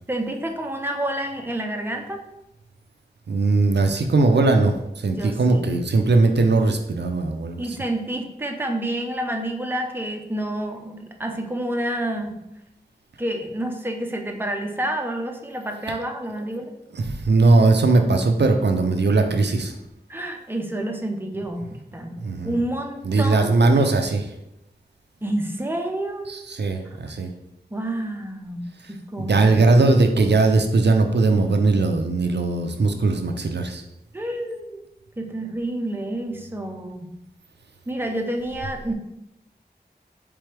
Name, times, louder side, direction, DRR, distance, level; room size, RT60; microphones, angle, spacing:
voice 1, 0.1-2.2 5.1-5.7 7.6-12.4 13.2-16.7 20.1-22.2 22.4-24.0 25.2-26.3 27.7-29.6 34.1-34.8 35.2-37.1 37.9-38.9, right 1 dB, 10° right, 2 dB, 0.6 m, -29 dB
voice 2, 3.3-7.8 16.9-19.7 22.2-22.6 23.0-24.3 26.3-27.3 29.2-33.8, right 3 dB, 80° right, 5 dB, 0.5 m, -19 dB
4.6 x 3.4 x 3.3 m, 0.84 s
wide cardioid pair, 60°, 17 cm